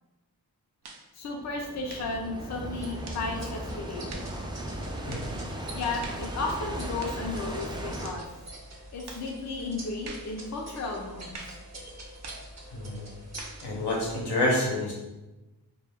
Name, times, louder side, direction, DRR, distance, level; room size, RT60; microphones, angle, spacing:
sound 1, 0.8-1.1 1.9-2.2 3.0-3.3 4.1-4.3 5.1-5.3 6.0-6.3 7.0-7.3 8.0-8.3 9.1-9.3 10.0-10.3 11.3-11.6 12.2-12.5 13.4-13.6, right 3 dB, 80° right, 0.5 m, -44 dB
voice 1, 1.2-4.3 5.7-8.2 8.9-11.4, left 3 dB, 45° left, 1 dB, 0.5 m, -34 dB
sound 2, 1.3-8.1, right 1 dB, 15° right, 0.3 m, -37 dB
sound 3, 2.8-14.2, right 1 dB, 45° right, 0.7 m, -45 dB
voice 2, 12.7-13.1 13.6-14.9, left 1 dB, 90° left, -4 dB, 0.8 m, -28 dB
2.2 x 2.2 x 3.3 m, 1.0 s
cardioid pair, 45°, 39 cm